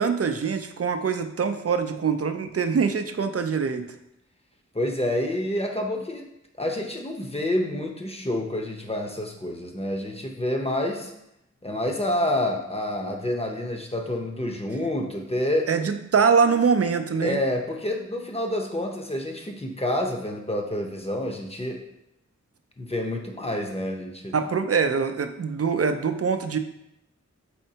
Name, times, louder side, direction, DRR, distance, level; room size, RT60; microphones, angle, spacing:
voice 1, 0.0-3.9 15.7-17.4 24.3-26.6, right 5 dB, 50° right, 8 dB, 0.4 m, -23 dB
voice 2, 4.7-6.3 6.6-11.1 11.6-15.7 17.2-21.8 22.8-24.4, left 1 dB, 20° left, 2 dB, 0.7 m, -28 dB
4.3 x 4.3 x 2.8 m, 0.83 s
wide cardioid pair, 45°, 30 cm